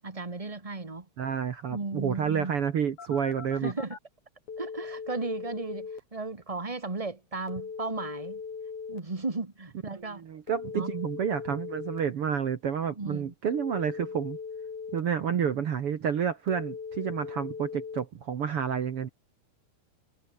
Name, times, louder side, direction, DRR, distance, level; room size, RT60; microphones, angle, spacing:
voice 1, 0.0-1.0 1.7-2.5 3.6-4.0 4.6-8.4 8.9-10.2 10.7-10.9 13.0-13.3, right 3 dB, 25° right, 0.7 m, -35 dB
voice 2, 1.2-3.7 9.9-14.4 14.9-19.1, right 7 dB, 50° right, 2.1 m, -30 dB
Telephone, 3.0-4.0 4.5-6.0 7.5-9.0 10.5-12.0 13.5-15.0 16.5-18.0, left 5 dB, 65° left, 5.7 m, -39 dB
omnidirectional pair, 3.7 m